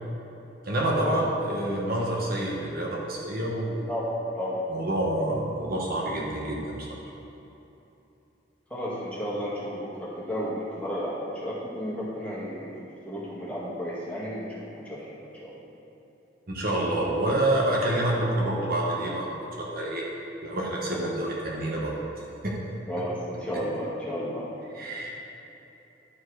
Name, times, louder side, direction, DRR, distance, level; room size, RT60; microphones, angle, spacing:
voice 1, 0.6-3.9 4.7-6.9 16.5-20.0 20.4-21.9 22.4-22.6 24.7-25.1, right 1 dB, 55° right, -3 dB, 1.2 m, -27 dB
voice 2, 3.9-4.6 8.7-12.7 13.1-14.5 14.7-15.6 20.9-21.1 22.9-24.5, equal, 10° left, -8 dB, 1.9 m, -33 dB
11.5 x 4.6 x 4.8 m, 2.9 s
head